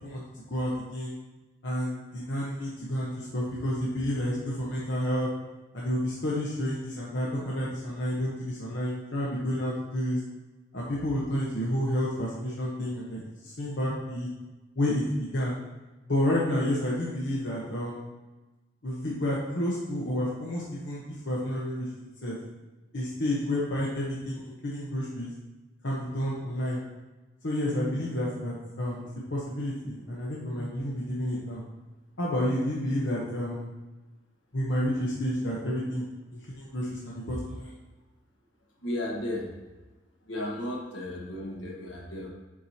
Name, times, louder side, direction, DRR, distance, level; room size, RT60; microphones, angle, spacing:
voice 1, 0.0-1.1 1.6-5.3 5.7-10.2 10.7-14.3 14.7-15.6 16.1-18.0 18.8-21.9 22.2-22.4 22.9-25.3 25.8-26.8 27.4-31.6 32.2-33.7 34.5-36.1 36.3-37.7, equal, 65° left, -5 dB, 1.0 m, -30 dB
voice 2, 38.8-39.5 40.2-42.3, left 1 dB, 80° left, -1 dB, 1.5 m, -34 dB
8.5 x 4.8 x 2.8 m, 1.1 s
head